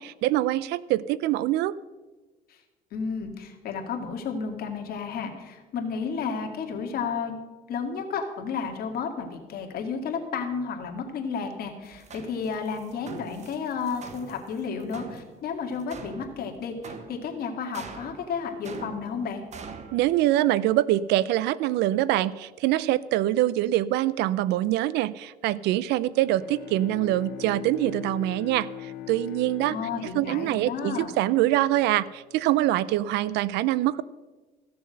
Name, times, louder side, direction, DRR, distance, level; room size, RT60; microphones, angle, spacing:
voice 1, 0.0-1.7 19.9-29.8 30.1-34.0, right 14 dB, 85° right, 20 dB, 0.5 m, -24 dB
voice 2, 2.9-7.4 7.7-19.4 29.7-31.1, left 5 dB, 65° left, 3 dB, 2.0 m, -32 dB
sound 1, 11.8-20.0, right 5 dB, 45° right, 1.3 m, -44 dB
Bowed string instrument, 26.1-31.7, left 12 dB, 90° left, 0.7 m, -41 dB
15.0 x 6.9 x 6.4 m, 1.2 s
cardioid pair, 110°, 17 cm